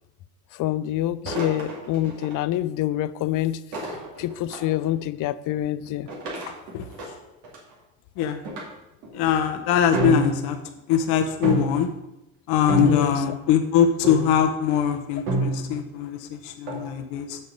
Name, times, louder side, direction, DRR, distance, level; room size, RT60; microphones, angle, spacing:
voice 1, 0.6-3.6 4.2-6.1 12.8-13.2, left 13 dB, 45° left, 16 dB, 0.5 m, -26 dB
sound 1, 1.3-2.4 3.7-4.8 6.1-7.7 8.4-8.6 9.0-9.3 9.9-10.7 11.4-11.9 12.7-13.4 14.0-14.4 15.3-15.9 16.7-16.9, right 2 dB, 75° right, 2.6 m, -28 dB
voice 2, 9.1-10.6 10.9-11.9 12.5-16.2 16.4-17.4, left 8 dB, 65° left, 6 dB, 0.9 m, -22 dB
6.7 x 6.6 x 5.2 m, 0.90 s
hypercardioid pair, 65°, 43 cm